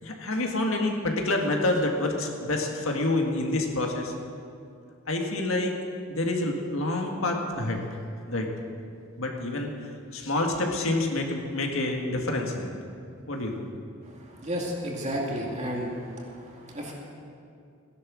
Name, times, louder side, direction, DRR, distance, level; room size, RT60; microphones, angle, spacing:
voice 1, 0.0-4.1 5.1-5.8 6.1-7.8 8.3-8.5 9.2-9.7 10.1-12.7 13.3-13.7, left 2 dB, 75° left, 2 dB, 1.8 m, -27 dB
voice 2, 14.4-16.2 16.7-16.9, equal, 35° right, -1 dB, 2.4 m, -31 dB
16.0 x 11.0 x 6.3 m, 2.4 s
head